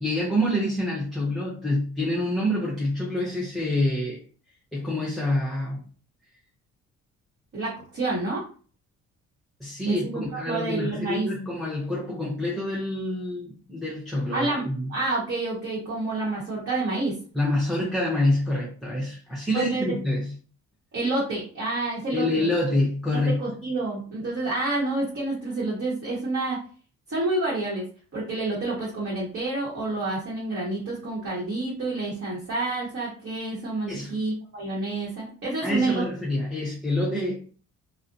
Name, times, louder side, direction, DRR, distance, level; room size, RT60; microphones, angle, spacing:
voice 1, 0.0-4.2 4.7-5.8 9.6-14.9 17.3-20.3 22.1-23.5 33.9-34.2 35.6-37.5, left 1 dB, ahead, 0.7 m, -27 dB
voice 2, 7.5-8.4 9.9-11.3 14.3-17.1 19.5-19.9 20.9-22.5 23.1-26.6 27.1-27.8 28.1-36.0, right 2 dB, 45° right, 1.0 m, -28 dB
2.4 x 2.1 x 2.5 m
cardioid pair, 90°, 30 cm